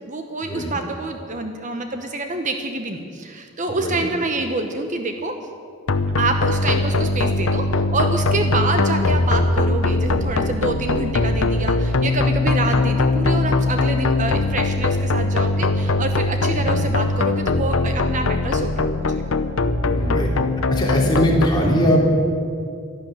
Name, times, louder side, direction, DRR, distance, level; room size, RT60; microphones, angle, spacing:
voice 1, 0.1-5.3 6.2-19.2, right 3 dB, 35° right, 5 dB, 1.0 m, -27 dB
sound 1, 5.9-21.5, left 2 dB, 85° left, 0.8 m, -21 dB
voice 2, 16.4-16.7 19.8-20.3 20.7-22.0, equal, 20° left, -3 dB, 3.3 m, -20 dB
12.5 x 12.0 x 9.5 m, 2.3 s
head